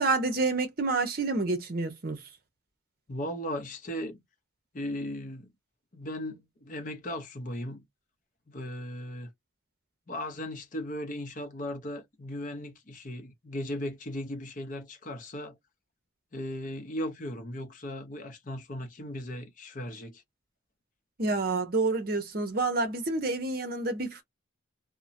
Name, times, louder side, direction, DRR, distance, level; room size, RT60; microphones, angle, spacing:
voice 1, 0.0-2.2 21.2-24.2, right 3 dB, 45° right, 0.7 m, -28 dB
voice 2, 3.1-4.2 4.7-5.5 5.9-7.8 8.5-9.3 10.1-15.6 16.3-20.2, left 1 dB, 40° left, 0.6 m, -37 dB
3.0 x 2.1 x 2.5 m
head